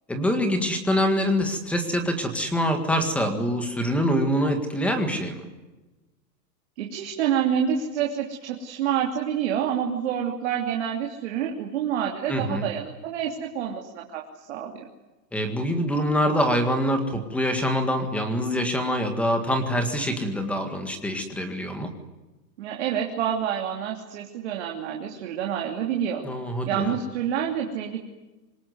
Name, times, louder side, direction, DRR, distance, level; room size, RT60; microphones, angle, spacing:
voice 1, 0.1-5.4 12.3-12.7 15.3-21.9 26.2-27.0, equal, 5° left, 7 dB, 1.8 m, -25 dB
voice 2, 6.8-14.2 14.5-14.9 22.6-26.3 26.7-28.0, right 9 dB, 40° right, 1 dB, 3.0 m, -28 dB
26.0 x 22.0 x 9.5 m, 1.1 s
supercardioid pair, 175°, 50 cm